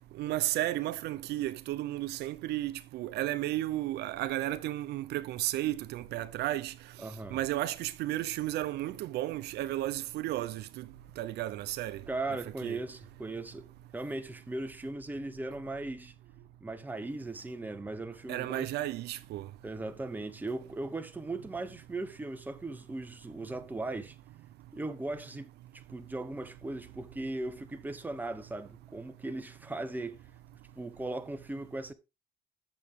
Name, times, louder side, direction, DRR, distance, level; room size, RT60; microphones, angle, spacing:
voice 1, 0.1-6.7 7.3-10.9 11.2-12.0 12.6-12.8 18.3-19.5, right 15 dB, 75° right, 0.7 m, -33 dB
voice 2, 7.0-7.4 12.1-13.6 13.9-16.1 16.6-18.7 19.6-24.2 24.7-25.5 25.9-30.2 30.8-31.9, right 2 dB, 10° right, 1.0 m, -38 dB
8.9 x 7.2 x 3.7 m
cardioid pair, 110°, 17 cm